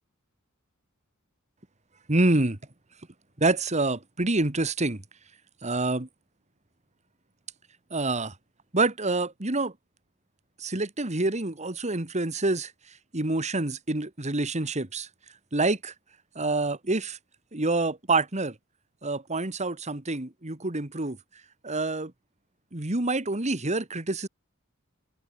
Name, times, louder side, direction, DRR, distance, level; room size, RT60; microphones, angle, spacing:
voice 1, 2.1-2.6 3.4-5.0 5.6-6.1 7.9-8.3 8.7-9.7 10.6-12.7 13.1-15.1 15.5-15.9 16.4-17.2 17.5-18.6 19.0-21.2 21.6-22.1 22.7-24.3, right 2 dB, 35° right, 2.1 m, -27 dB
head